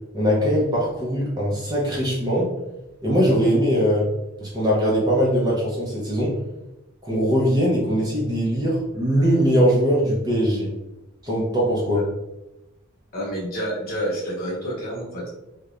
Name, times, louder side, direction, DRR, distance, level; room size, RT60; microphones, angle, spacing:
voice 1, 0.1-2.5 3.0-4.1 4.4-6.4 7.0-10.7 11.2-12.1, equal, 20° right, -5 dB, 0.5 m, -21 dB
voice 2, 13.1-15.3, equal, 45° left, -4 dB, 0.9 m, -28 dB
2.9 x 2.1 x 2.4 m, 0.93 s
head